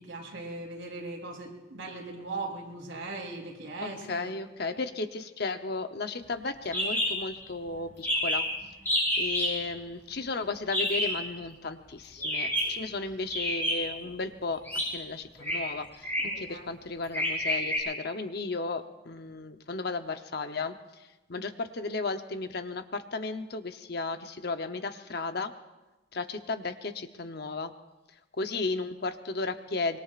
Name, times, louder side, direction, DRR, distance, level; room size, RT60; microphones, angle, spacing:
voice 1, 0.0-4.3 16.2-16.6, right 3 dB, 80° right, -1 dB, 3.8 m, -39 dB
voice 2, 3.8-8.5 9.2-14.6 14.9-16.1 16.4-20.8 21.3-25.5 26.1-27.7 28.4-30.0, left 3 dB, 55° left, 8 dB, 0.8 m, -34 dB
sound 1, 6.7-7.1 7.4-7.5 7.7-7.8 8.0-8.5 8.8-9.5 10.7-11.2 12.2-12.7 13.3-14.0 14.6-14.8 15.4-15.6 16.0-16.4 17.1-17.8, equal, 10° left, 6.9 m, -28 dB
25.0 x 22.0 x 2.5 m, 1.1 s
head